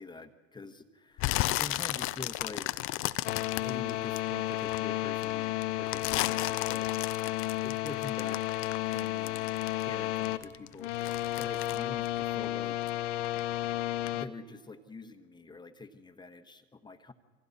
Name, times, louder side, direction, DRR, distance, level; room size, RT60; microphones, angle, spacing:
voice 1, 0.0-2.9 3.3-6.9 7.6-8.5 8.9-12.8 14.1-17.1, left 3 dB, 10° left, 8 dB, 1.1 m, -45 dB
sound 1, 1.2-4.8 5.2-10.0 10.2-13.0 13.2-13.6 14.1-14.2, left 18 dB, 30° left, 0.5 m, -34 dB
sound 2, 3.2-10.4 10.8-14.3, left 15 dB, 60° left, 1.1 m, -32 dB
27.5 x 25.0 x 4.2 m, 1.5 s
hypercardioid pair, 95°, 41 cm